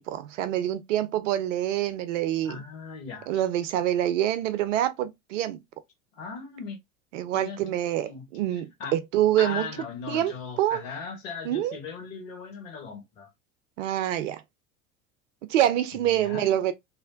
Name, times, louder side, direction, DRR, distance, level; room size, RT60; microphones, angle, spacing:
voice 1, 0.0-2.6 3.3-5.6 7.1-9.7 10.1-10.3 10.6-10.8 11.4-11.8 13.8-14.4 15.5-16.7, right 12 dB, 60° right, 0.7 m, -26 dB
voice 2, 2.4-3.4 6.1-6.8 7.3-7.6 8.0-8.2 8.5-8.9 9.4-13.3 15.9-16.5, left 5 dB, 65° left, 1.4 m, -38 dB
3.3 x 2.6 x 2.5 m
figure-of-eight pair, 80°, 42 cm